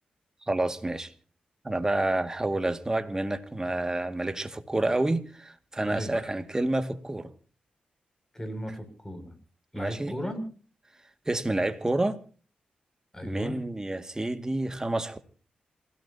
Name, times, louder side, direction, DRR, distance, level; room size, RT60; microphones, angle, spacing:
voice 1, 0.5-1.1 1.6-7.3 9.7-10.2 11.3-12.2 13.2-15.2, right 2 dB, 20° right, 2.2 m, -29 dB
voice 2, 5.8-6.3 8.3-9.4 9.7-10.4 13.1-13.6, equal, 15° left, 6.8 m, -36 dB
27.5 x 17.5 x 2.9 m
cardioid pair, 55°, 3 cm